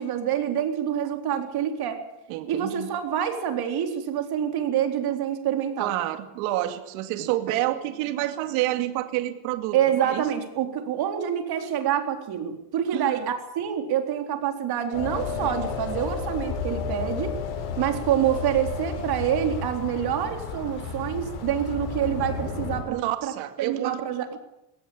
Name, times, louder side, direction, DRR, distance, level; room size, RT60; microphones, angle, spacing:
voice 1, 0.0-2.0 2.5-5.9 9.7-17.4 17.8-23.3 23.6-24.4, right 9 dB, 50° right, 5 dB, 4.0 m, -27 dB
voice 2, 2.3-2.9 5.8-10.2 12.9-13.2 22.9-24.0, right 14 dB, 75° right, 7 dB, 2.4 m, -28 dB
sound 1, 14.9-22.8, left 5 dB, 65° left, 7.6 m, -32 dB
21.5 x 17.5 x 8.8 m, 0.88 s
cardioid pair, 135°, 47 cm